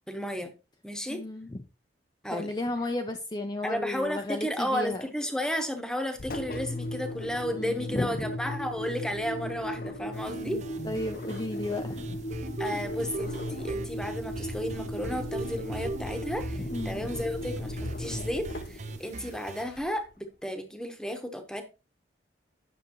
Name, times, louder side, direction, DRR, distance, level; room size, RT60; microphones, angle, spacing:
voice 1, 0.1-0.5 0.8-1.2 2.2-2.5 3.6-10.6 12.6-21.6, equal, 5° left, 1.1 m, -33 dB
voice 2, 1.1-1.6 2.3-5.0 7.6-8.3 10.8-12.2 12.7-12.8 16.6-17.1, left 2 dB, 25° left, 0.6 m, -33 dB
Engine, 6.2-20.1, left 1 dB, 50° left, 0.8 m, -37 dB
sound 1, 10.1-19.6, right 3 dB, 40° right, 0.7 m, -40 dB
9.7 x 6.5 x 3.0 m
head